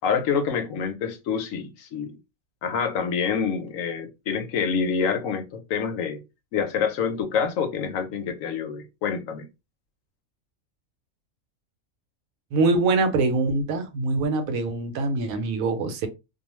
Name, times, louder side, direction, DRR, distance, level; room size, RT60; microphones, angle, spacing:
voice 1, 0.0-2.2 2.6-6.2 6.5-9.4, left 6 dB, 75° left, 1.0 m, -27 dB
voice 2, 12.5-16.1, right 3 dB, 80° right, 1.0 m, -24 dB
2.4 x 2.2 x 2.9 m
omnidirectional pair, 1.4 m